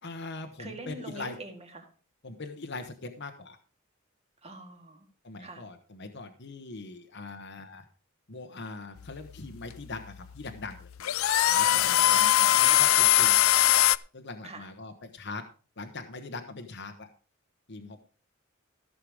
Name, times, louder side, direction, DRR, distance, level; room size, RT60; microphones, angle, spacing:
voice 1, 0.0-1.4 2.2-3.6 5.2-7.9 8.3-10.9 11.5-13.5 14.1-15.4 15.8-17.1 17.7-18.0, left 3 dB, 55° left, 5 dB, 1.0 m, -41 dB
voice 2, 0.6-1.9 4.4-5.1 5.4-5.6 11.7-12.6 14.4-14.7, right 1 dB, 30° right, 4 dB, 2.2 m, -44 dB
sound 1, 9.0-14.0, left 14 dB, 85° left, 0.4 m, -22 dB
15.0 x 6.7 x 4.9 m, 0.37 s
head